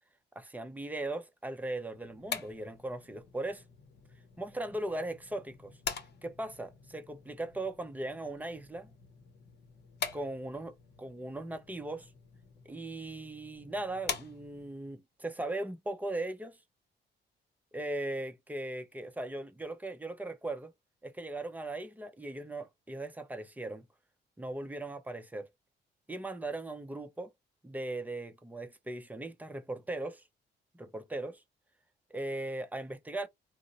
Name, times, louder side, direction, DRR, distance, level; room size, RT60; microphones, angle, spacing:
voice 1, 0.4-3.6 4.4-5.7 6.2-8.9 10.1-12.1 12.7-16.6 17.7-20.7 21.0-23.8 24.4-25.5 26.1-27.3 27.6-30.2 30.7-31.4 32.1-33.3, right 2 dB, 10° right, 0.6 m, -38 dB
sound 1, 1.9-14.8, left 6 dB, 55° left, 0.8 m, -45 dB
2.6 x 2.0 x 3.7 m
cardioid pair, 90°, 20 cm